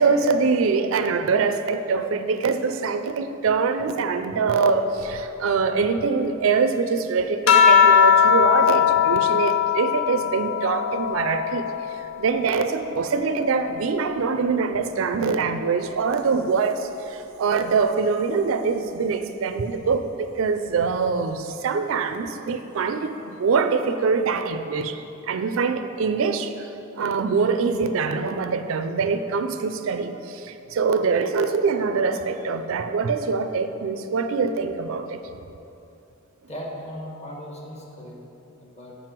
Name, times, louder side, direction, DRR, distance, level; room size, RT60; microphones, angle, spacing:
voice 1, 0.0-11.7 12.2-25.0 25.2-26.7 27.0-35.2, right 5 dB, 75° right, 9 dB, 0.4 m, -24 dB
sound 1, 7.5-12.3 12.7-14.5 15.6-16.2, left 8 dB, 75° left, 0.5 m, -21 dB
voice 2, 36.5-38.2 38.6-39.0, equal, 30° left, -2 dB, 1.2 m, -37 dB
7.7 x 5.3 x 4.5 m, 2.8 s
head